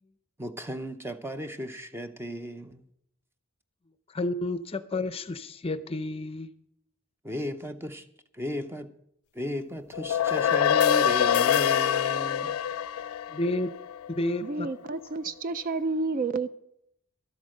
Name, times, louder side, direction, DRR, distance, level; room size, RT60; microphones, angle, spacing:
voice 1, 0.4-2.8 7.2-8.0 8.4-8.9 9.3-12.6, equal, 10° right, 0.7 m, -35 dB
voice 2, 4.1-6.5 13.3-13.7 14.1-14.7, left 2 dB, 25° left, 0.5 m, -30 dB
sound 1, 9.9-14.5, left 9 dB, 85° left, 0.4 m, -25 dB
voice 3, 14.4-16.5, right 3 dB, 40° right, 0.3 m, -30 dB
12.5 x 8.1 x 6.4 m
head